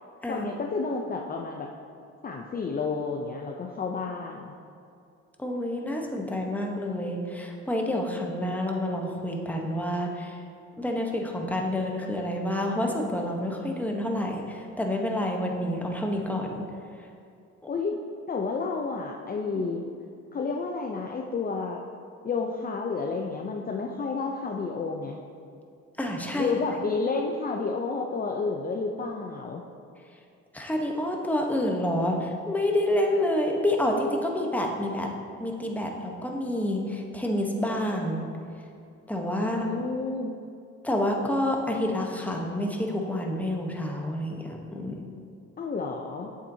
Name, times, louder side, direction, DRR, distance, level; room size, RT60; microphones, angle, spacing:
voice 1, 0.3-1.7 2.2-4.5 17.7-18.0 18.3-19.9 20.3-21.8 22.2-25.2 26.3-29.6 39.4-40.4 45.6-46.3, left 4 dB, 30° left, 1 dB, 0.5 m, -30 dB
voice 2, 5.4-10.4 10.8-16.6 19.5-19.6 26.0-26.5 30.5-35.1 35.4-38.2 39.1-39.7 40.8-45.0, left 1 dB, 5° left, 1 dB, 1.0 m, -28 dB
8.5 x 7.3 x 2.7 m, 2.4 s
cardioid pair, 90°, 30 cm